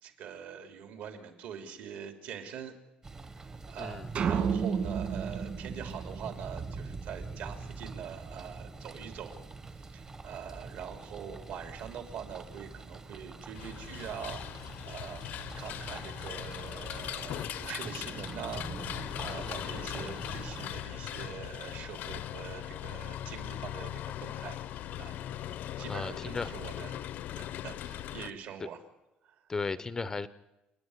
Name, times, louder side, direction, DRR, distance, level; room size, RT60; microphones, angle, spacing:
voice 1, 0.0-2.7 3.3-9.4 9.7-15.2 15.6-24.6 25.0-25.2 25.8-27.0 27.3-28.8 29.2-29.3, right 8 dB, 65° right, 6 dB, 3.1 m, -44 dB
sound 1, 3.0-20.7, right 3 dB, 20° right, 1.0 m, -44 dB
sound 2, 4.1-6.6, right 7 dB, 45° right, 2.1 m, -31 dB
sound 3, 13.5-28.3, left 12 dB, 55° left, 0.7 m, -39 dB
voice 2, 19.4-19.8 25.9-26.5 29.5-30.3, left 4 dB, 15° left, 15 dB, 0.6 m, -35 dB
29.5 x 9.9 x 9.7 m, 0.98 s
cardioid pair, 160°, 3 cm